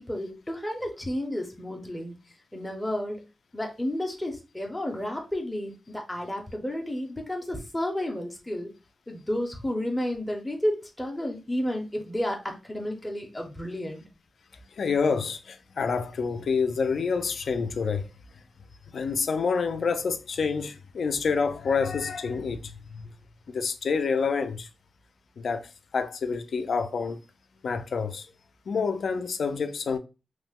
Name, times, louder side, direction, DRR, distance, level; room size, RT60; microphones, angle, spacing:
voice 1, 0.0-2.2 2.5-3.2 3.5-8.7 9.1-14.0, left 1 dB, 5° left, 0.5 m, -31 dB
voice 2, 14.8-18.1 18.9-23.1 23.5-24.7 25.4-27.2 27.6-28.3 28.7-30.0, left 5 dB, 65° left, 0.3 m, -28 dB
3.0 x 2.0 x 3.4 m
wide cardioid pair, 175°, 0 cm